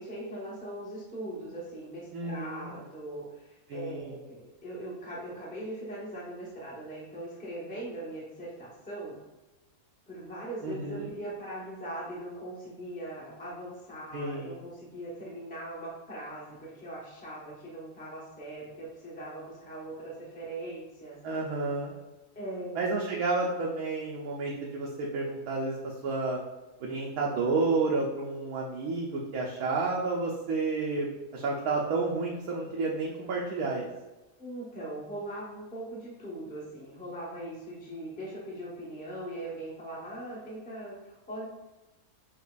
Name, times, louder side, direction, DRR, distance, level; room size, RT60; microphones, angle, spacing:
voice 1, 0.0-9.2 10.1-21.2 22.3-23.0 34.4-41.4, right 1 dB, 5° left, -6 dB, 0.8 m, -40 dB
voice 2, 2.1-2.7 3.7-4.1 10.6-11.1 14.1-14.6 21.2-21.9 22.7-25.8 26.0-26.4 26.8-33.9, right 3 dB, 80° right, -2 dB, 1.1 m, -30 dB
6.0 x 2.8 x 2.4 m, 1.1 s
omnidirectional pair, 1.5 m